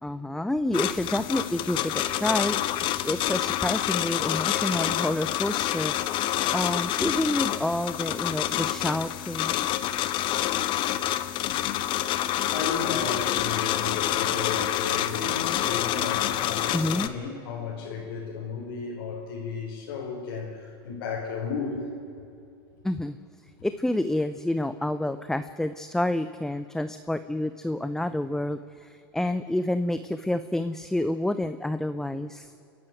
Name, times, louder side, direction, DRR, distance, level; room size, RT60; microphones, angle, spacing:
voice 1, 0.0-5.9 6.5-9.6 16.7-17.1 22.8-23.2 23.6-32.5, left 1 dB, 5° left, 11 dB, 0.6 m, -28 dB
sound 1, 0.7-17.1, left 13 dB, 40° left, 1.1 m, -27 dB
voice 2, 12.3-21.8, left 5 dB, 70° left, -4 dB, 4.8 m, -34 dB
30.0 x 11.0 x 9.3 m, 2.7 s
hypercardioid pair, 120°, 13 cm